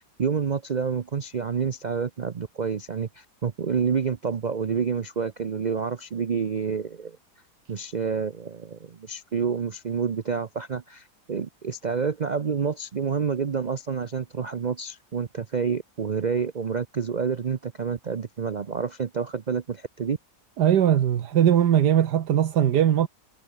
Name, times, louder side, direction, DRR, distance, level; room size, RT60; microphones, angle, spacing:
voice 1, 0.2-7.2 7.7-20.2, right 6 dB, 65° right, 0.4 m, -28 dB
voice 2, 20.6-23.1, right 10 dB, 80° right, 1.7 m, -20 dB
omnidirectional pair, 1.8 m